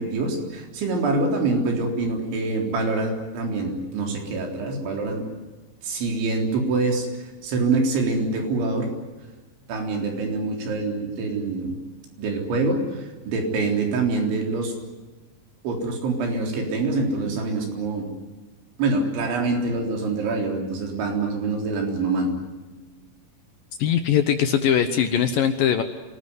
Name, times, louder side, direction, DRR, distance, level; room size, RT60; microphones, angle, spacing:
voice 1, 0.0-5.3 5.8-7.1 7.4-8.9 9.7-11.8 12.2-14.7 15.6-18.1 18.8-22.3, right 3 dB, 85° right, 2 dB, 6.2 m, -25 dB
voice 2, 23.8-25.8, left 9 dB, 70° left, 8 dB, 2.2 m, -21 dB
26.5 x 19.5 x 9.6 m, 1.2 s
omnidirectional pair, 5.2 m